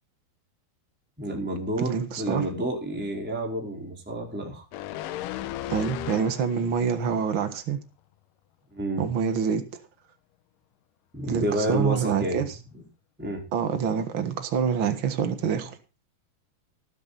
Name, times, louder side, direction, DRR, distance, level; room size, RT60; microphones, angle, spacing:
voice 1, 1.2-4.6 5.2-5.3 8.7-9.0 11.1-12.5 12.7-12.8 13.2-13.4, right 1 dB, ahead, 4.2 m, -30 dB
voice 2, 1.8-2.5 5.7-7.8 9.0-9.6 11.3-12.5 13.5-15.8, right 7 dB, 90° right, 1.1 m, -26 dB
sound 1, 4.7-6.8 7.2-7.4, left 13 dB, 80° left, 1.9 m, -35 dB
19.0 x 10.0 x 4.2 m
omnidirectional pair, 4.9 m